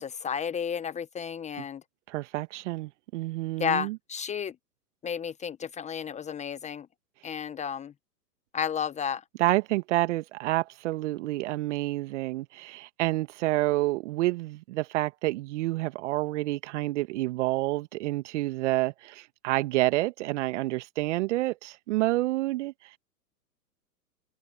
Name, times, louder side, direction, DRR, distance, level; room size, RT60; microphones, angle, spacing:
voice 1, 0.0-1.8 3.6-4.5 5.0-6.9 7.2-7.9 8.5-9.2, left 7 dB, 15° left, 1.2 m, -32 dB
voice 2, 2.1-4.0 9.4-22.7, right 18 dB, 45° right, 1.9 m, -28 dB
hypercardioid pair, 115°, 47 cm